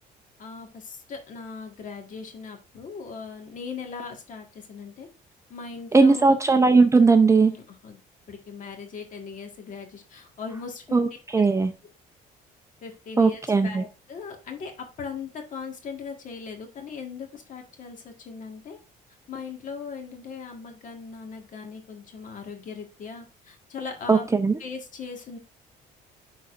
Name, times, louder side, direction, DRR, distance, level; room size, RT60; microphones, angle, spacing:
voice 1, 0.4-5.1 5.5-6.4 7.3-8.0 8.3-11.0 11.3-11.4 12.8-18.8 19.3-24.3 24.6-25.4, left 5 dB, 50° left, 4 dB, 1.6 m, -39 dB
voice 2, 5.9-7.5 10.9-11.7 13.2-13.8 24.1-24.5, right 4 dB, 15° right, 7 dB, 0.5 m, -18 dB
11.0 x 3.9 x 2.5 m, 0.32 s
cardioid pair, 110°, 17 cm